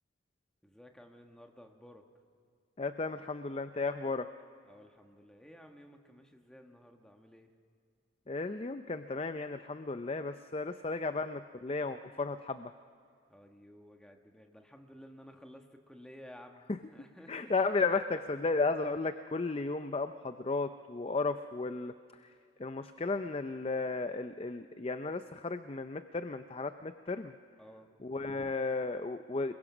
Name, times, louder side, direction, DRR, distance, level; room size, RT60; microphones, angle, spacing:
voice 1, 0.6-2.0 4.7-7.5 13.3-17.5 27.6-27.9, equal, 5° left, 3 dB, 1.4 m, -54 dB
voice 2, 2.8-4.3 8.3-12.7 16.7-16.8 17.3-21.9 22.6-27.3 28.0-29.5, left 3 dB, 30° left, 10 dB, 0.5 m, -34 dB
27.0 x 22.0 x 6.1 m, 2.3 s
head